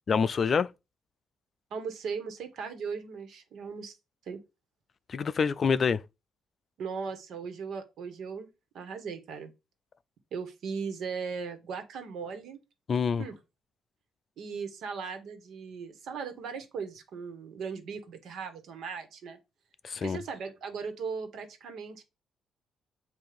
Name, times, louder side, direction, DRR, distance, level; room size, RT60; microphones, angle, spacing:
voice 1, 0.1-0.7 5.1-6.0 12.9-13.2 19.8-20.2, left 6 dB, 45° left, 0.4 m, -26 dB
voice 2, 1.7-3.9 4.3-4.4 6.8-8.5 8.7-9.5 10.3-12.6 13.2-13.4 14.4-19.4 20.0-22.0, right 5 dB, 70° right, 1.5 m, -38 dB
7.7 x 2.7 x 5.1 m
cardioid pair, 90°, 0 cm